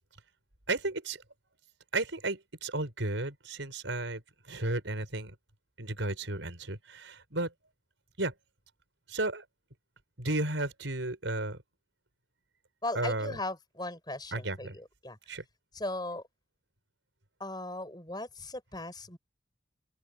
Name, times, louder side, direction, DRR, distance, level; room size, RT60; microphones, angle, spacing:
voice 1, 0.7-1.2 1.9-4.2 4.5-5.3 5.8-7.5 8.2-8.3 9.1-9.4 10.2-11.6 12.9-13.4 14.3-14.8 15.3-15.4, right 2 dB, 85° right, 5.7 m, -33 dB
voice 2, 12.8-15.2 15.7-16.2 17.4-19.2, left 2 dB, 20° left, 6.4 m, -38 dB
head